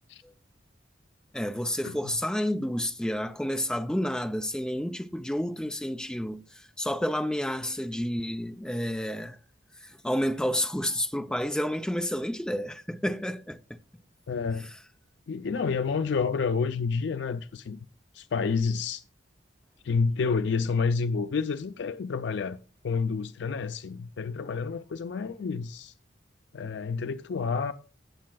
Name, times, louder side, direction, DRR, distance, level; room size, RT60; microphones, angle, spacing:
voice 1, 1.3-9.4 9.8-13.8, equal, 5° left, 0.4 m, -30 dB
voice 2, 14.3-14.7 15.3-17.9 18.1-19.0 19.8-22.6 22.8-25.9 26.5-27.7, left 5 dB, 70° left, 0.4 m, -29 dB
16.5 x 7.5 x 2.3 m
head